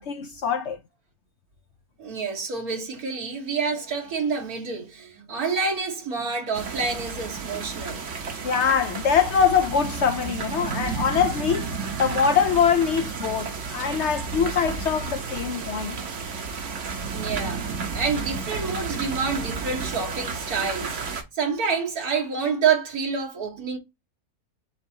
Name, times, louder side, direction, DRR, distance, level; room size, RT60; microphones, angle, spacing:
voice 1, 0.1-0.8 8.4-11.7 12.0-16.0, left 7 dB, 65° left, 0.7 m, -23 dB
voice 2, 2.0-8.0 15.9-16.6 17.1-23.8, right 5 dB, 80° right, 1.9 m, -28 dB
sound 1, 6.5-21.2, right 5 dB, 60° right, 1.2 m, -32 dB
7.2 x 2.6 x 2.7 m
omnidirectional pair, 1.5 m